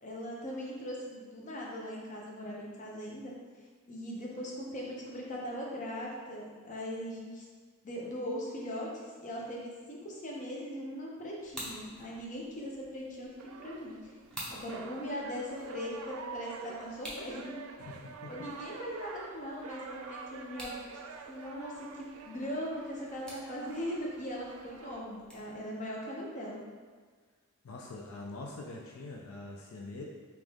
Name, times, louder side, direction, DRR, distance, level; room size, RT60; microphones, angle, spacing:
voice 1, 0.0-3.3 3.9-7.4 7.8-8.9 9.2-13.3 13.6-14.1 14.5-17.6 18.3-20.8 21.3-26.6, equal, 35° left, -3 dB, 0.7 m, -40 dB
sound 1, 11.4-25.6, equal, 5° left, 0.8 m, -51 dB
sound 2, 13.4-25.0, right 5 dB, 85° right, 0.4 m, -48 dB
voice 2, 17.8-18.3 27.6-30.0, left 2 dB, 75° left, -1 dB, 0.4 m, -44 dB
3.4 x 3.0 x 3.6 m, 1.5 s
head